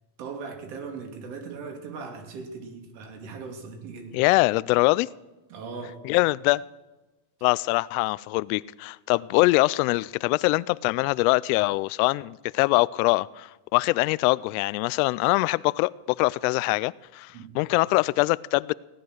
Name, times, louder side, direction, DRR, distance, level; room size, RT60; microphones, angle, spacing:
voice 1, 0.2-4.2 5.5-6.0 17.3-17.5, right 4 dB, 65° right, 2.9 m, -39 dB
voice 2, 4.1-5.1 6.0-6.6 7.4-18.7, left 22 dB, 65° left, 0.5 m, -23 dB
17.5 x 10.5 x 6.3 m
supercardioid pair, 150°, 49 cm